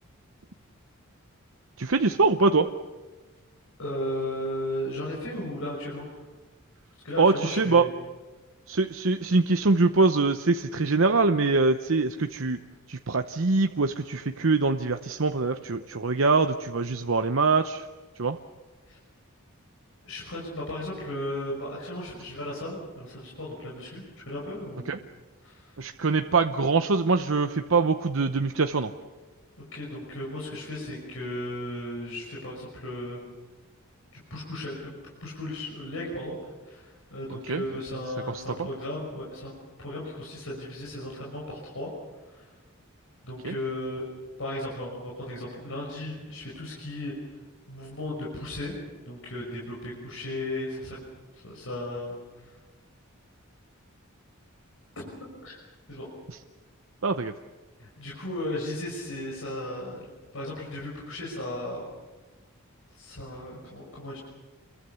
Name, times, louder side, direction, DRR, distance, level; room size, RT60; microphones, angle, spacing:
voice 1, 1.8-2.7 7.2-7.9 8.7-12.6 12.9-17.9 18.2-18.4 24.9-25.0 25.8-28.9 37.4-37.6 38.3-38.5 43.4-43.5 57.0-57.3, right 3 dB, 65° right, 7 dB, 0.8 m, -23 dB
voice 2, 3.8-6.2 7.0-7.9 18.9-19.0 20.0-25.0 25.4-25.7 29.7-33.3 34.1-34.9 35.2-39.5 39.8-41.9 42.3-42.4 43.2-44.0 44.4-47.1 47.7-48.7 49.0-51.0 51.3-52.5 55.0-55.1 55.4-55.6 55.9-56.1 57.8-60.1 60.3-61.9 63.0-64.2, left 1 dB, 65° left, -4 dB, 5.8 m, -35 dB
28.0 x 22.5 x 7.0 m, 1.3 s
head